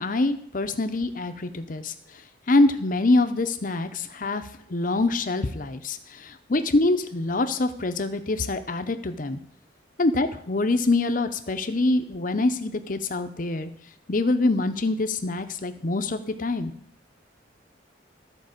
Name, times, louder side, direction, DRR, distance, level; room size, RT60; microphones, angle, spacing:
voice 1, 0.0-1.9 2.5-4.4 4.7-9.4 10.0-13.7 14.1-16.7, left 2 dB, 45° left, 9 dB, 0.7 m, -25 dB
13.0 x 4.6 x 6.6 m, 0.69 s
head